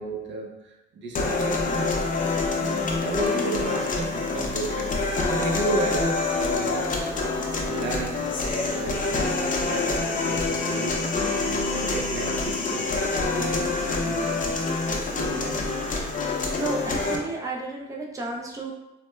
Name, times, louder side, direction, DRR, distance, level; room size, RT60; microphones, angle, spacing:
voice 1, 0.0-2.0 2.3-6.9 7.6-9.0 9.6-11.1 11.5-15.6, right 2 dB, 65° right, 0 dB, 0.7 m, -33 dB
sound 1, 1.2-17.2, left 3 dB, 40° left, 0.6 m, -26 dB
voice 2, 16.5-18.7, right 2 dB, 15° right, -1 dB, 0.5 m, -32 dB
4.1 x 2.1 x 2.2 m, 0.94 s
cardioid pair, 90°, 20 cm